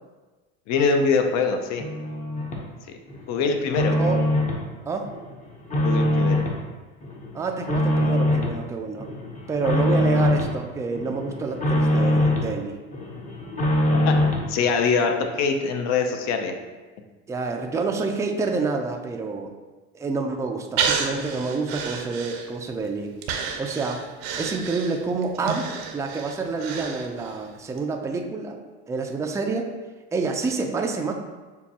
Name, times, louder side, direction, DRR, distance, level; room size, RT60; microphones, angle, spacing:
voice 1, 0.7-1.8 2.9-3.0 3.3-4.0 5.8-6.3 14.1-14.2 14.5-16.5, left 5 dB, 55° left, 5 dB, 0.7 m, -23 dB
sound 1, 1.8-2.6 3.1-4.6 5.0-6.6 7.0-8.6 9.0-10.6 10.9-12.5 12.9-14.5, left 1 dB, 25° left, 0.8 m, -23 dB
voice 2, 7.3-9.1 9.5-12.8 17.3-19.5 19.9-23.1 23.6-24.0 24.4-28.6 28.9-29.7 30.1-31.1, right 4 dB, 10° right, 3 dB, 0.4 m, -28 dB
Breathing, 20.8-22.7 23.2-27.4 27.8-27.9, right 6 dB, 80° right, 0.7 m, -30 dB
6.8 x 2.3 x 2.8 m, 1.3 s
supercardioid pair, 100°, 32 cm